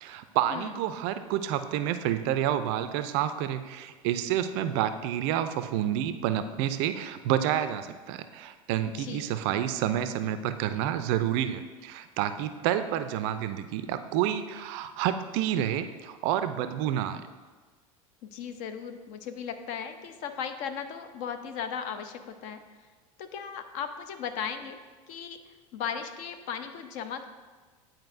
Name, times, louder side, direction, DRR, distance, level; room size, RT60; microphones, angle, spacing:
voice 1, 0.0-17.2, right 11 dB, 45° right, 11 dB, 0.4 m, -29 dB
voice 2, 8.8-9.4 18.2-22.6 23.2-24.8 25.1-25.4 25.7-27.3, left 7 dB, 45° left, 8 dB, 0.5 m, -37 dB
9.4 x 4.4 x 2.5 m, 1.4 s
figure-of-eight pair, 75°, 18 cm